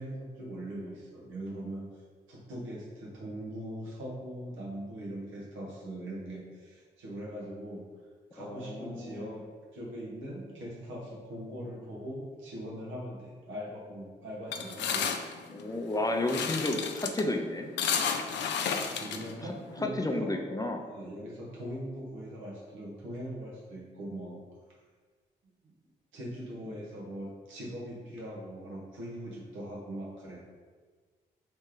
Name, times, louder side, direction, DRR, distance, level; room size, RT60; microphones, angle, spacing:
voice 1, 0.0-1.8 2.3-7.8 8.3-9.4 9.7-15.1 18.9-20.5 20.8-24.4 26.1-30.4, equal, 80° right, -4 dB, 1.1 m, -41 dB
voice 2, 8.4-9.3 15.5-17.7 19.8-20.8 26.7-26.8, left 2 dB, 20° left, 3 dB, 0.5 m, -32 dB
sound 1, 14.5-19.8, left 7 dB, 65° left, 0.4 m, -32 dB
3.2 x 3.1 x 3.7 m, 1.5 s
hypercardioid pair, 40°, 20 cm